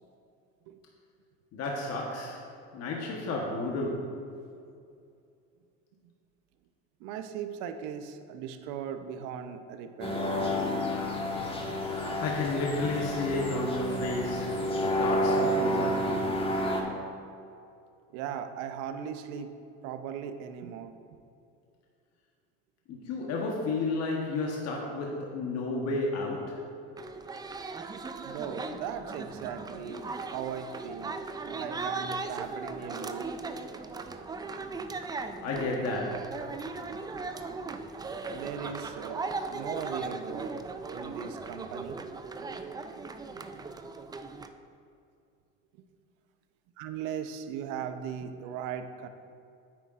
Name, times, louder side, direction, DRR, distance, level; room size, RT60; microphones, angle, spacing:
voice 1, 1.5-2.5 2.7-4.2 11.8-16.5 22.9-26.7 35.4-36.4, left 2 dB, 50° left, -1 dB, 1.2 m, -32 dB
voice 2, 7.0-10.3 18.1-19.5 19.8-20.9 28.2-33.2 38.3-40.5 40.9-42.0 42.5-42.6 42.9-43.1 44.0-44.1 46.8-49.1, right 8 dB, 70° right, 8 dB, 0.8 m, -38 dB
sound 1, 10.0-16.8, equal, 15° left, 1.4 m, -30 dB
sound 2, 27.0-44.5, right 3 dB, 15° right, 0.4 m, -38 dB
9.5 x 8.9 x 2.5 m, 2.5 s
supercardioid pair, 105°, 32 cm